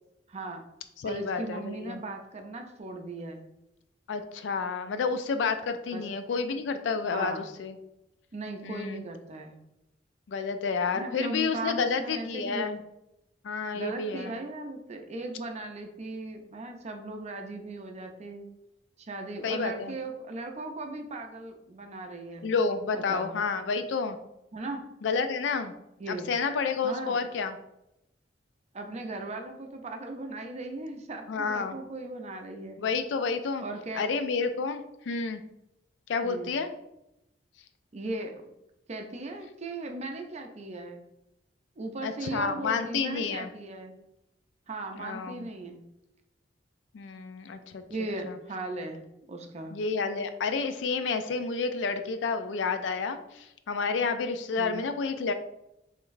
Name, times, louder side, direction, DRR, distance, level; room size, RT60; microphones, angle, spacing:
voice 1, 0.3-0.7 1.0-3.4 5.9-6.0 7.1-7.5 8.3-9.6 10.9-12.8 13.7-18.5 19.0-22.5 22.9-23.3 24.5-24.8 26.0-26.3 26.8-27.2 28.7-32.8 33.6-34.0 36.2-36.5 37.9-38.3 38.9-41.0 41.8-43.9 44.7-45.8 47.9-49.0 49.3-49.8 54.6-54.8, right 2 dB, 35° right, 4 dB, 0.5 m, -37 dB
voice 2, 1.0-2.0 4.1-7.8 8.6-9.0 10.3-12.8 13.4-14.4 19.4-20.0 22.4-24.2 25.0-25.7 26.1-27.6 31.3-31.8 32.8-33.6 33.9-35.4 36.1-36.7 42.0-43.5 45.0-45.5 46.9-47.8 48.2-48.4 49.7-55.3, left 4 dB, 75° left, 9 dB, 0.4 m, -30 dB
3.8 x 3.3 x 2.5 m, 0.86 s
head